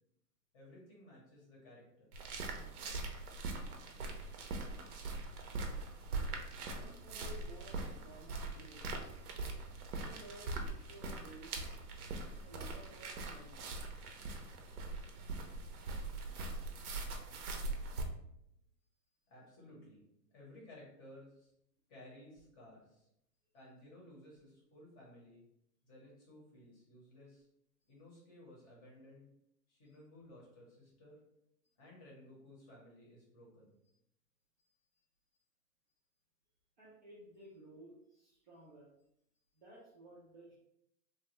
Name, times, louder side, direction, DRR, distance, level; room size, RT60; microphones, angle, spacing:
voice 1, 0.5-2.1 19.3-20.0 20.3-21.5 21.9-23.1 23.5-25.4 25.8-27.5 27.9-29.3 29.7-31.2 31.8-33.8, left 1 dB, 20° left, -4 dB, 0.7 m, -57 dB
sound 1, 2.1-18.0, right 3 dB, 65° right, 0.7 m, -42 dB
voice 2, 6.7-9.4 9.9-11.7 12.4-13.7 34.6-34.7 36.8-38.9 39.6-40.5, right 1 dB, 30° right, -6 dB, 0.4 m, -56 dB
3.1 x 2.2 x 2.9 m, 0.78 s
hypercardioid pair, 145°, 49 cm